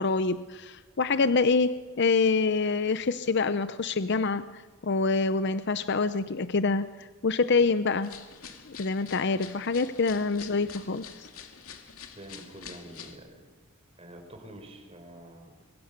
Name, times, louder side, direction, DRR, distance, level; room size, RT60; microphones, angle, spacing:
voice 1, 0.0-8.2 8.7-11.3, left 4 dB, 55° left, 12 dB, 0.7 m, -26 dB
sound 1, 8.0-13.2, left 7 dB, 80° left, 2.7 m, -47 dB
voice 2, 12.2-13.5 14.0-15.6, right 1 dB, 25° right, 5 dB, 4.2 m, -47 dB
26.0 x 23.5 x 6.7 m, 1.3 s
head